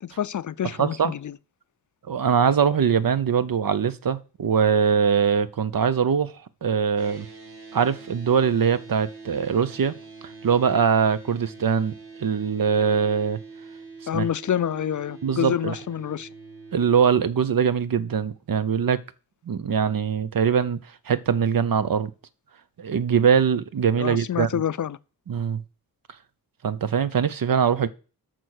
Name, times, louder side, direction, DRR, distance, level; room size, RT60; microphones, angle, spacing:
voice 1, 0.0-1.4 14.1-16.3 24.0-25.0, left 9 dB, 55° left, 0.4 m, -27 dB
voice 2, 0.8-1.1 2.1-6.3 6.6-7.3 7.7-9.9 10.2-13.4 14.1-14.3 15.2-15.7 16.7-19.0 19.5-20.8 21.1-22.1 22.8-24.5 25.3-25.6 26.6-27.9, right 7 dB, 60° right, 0.7 m, -22 dB
sound 1, 7.0-17.0, right 4 dB, 85° right, 1.8 m, -44 dB
8.9 x 6.1 x 6.4 m
wide cardioid pair, 75°, 38 cm